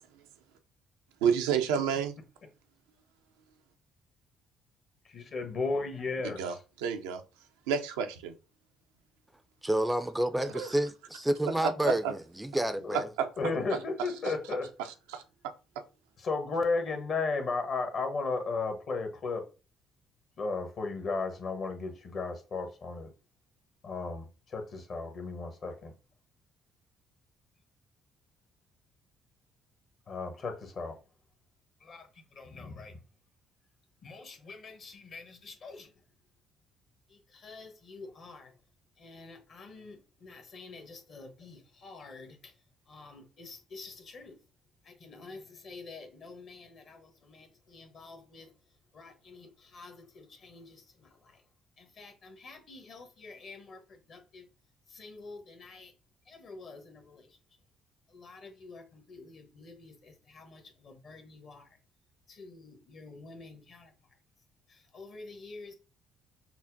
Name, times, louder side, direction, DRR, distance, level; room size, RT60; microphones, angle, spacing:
voice 1, 1.2-2.2 6.2-7.2 7.7-8.3 10.5-10.7 11.6-12.1 13.2-13.3 14.2-14.3 14.8-15.2, right 7 dB, 75° right, 0.4 m, -30 dB
voice 2, 5.1-6.6 12.8-13.0 13.4-14.7 16.2-19.4 20.4-23.1 23.8-25.9 30.1-31.0 31.8-32.1 32.3-32.9 34.0-35.9 37.1-38.5 39.0-42.4 42.9-44.4 44.9-48.5 48.9-51.1 51.8-54.4 54.9-55.9 56.3-57.2 58.1-61.6 62.3-63.9 64.9-65.7, left 3 dB, 50° left, 1.0 m, -38 dB
voice 3, 9.6-13.1, right 1 dB, 10° right, 0.4 m, -29 dB
5.7 x 2.1 x 2.5 m
figure-of-eight pair, 45°, 0 cm